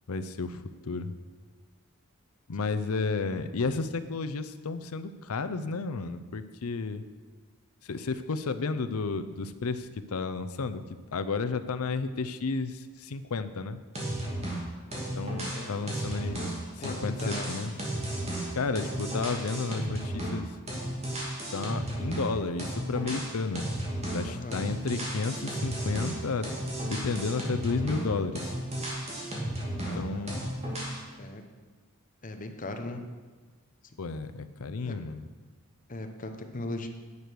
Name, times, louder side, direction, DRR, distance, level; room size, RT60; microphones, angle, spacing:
voice 1, 0.1-1.1 2.5-7.0 7.8-10.8 11.1-13.8 15.2-16.4 16.8-17.7 18.5-20.5 21.5-23.7 24.1-26.5 26.8-28.5 29.7-30.5 34.0-35.3, left 4 dB, 80° left, 11 dB, 0.6 m, -32 dB
sound 1, 14.0-14.6 14.9-20.4 20.7-22.3 22.6-24.3 24.5-28.1 28.4-30.0 30.3-31.0, right 1 dB, 30° right, 2.4 m, -34 dB
voice 2, 16.8-17.8 24.2-24.6 29.8-30.3 31.2-31.4 32.2-33.0 34.8-35.0 35.9-36.9, left 2 dB, 35° left, 6 dB, 0.9 m, -38 dB
9.8 x 6.7 x 6.2 m, 1.4 s
head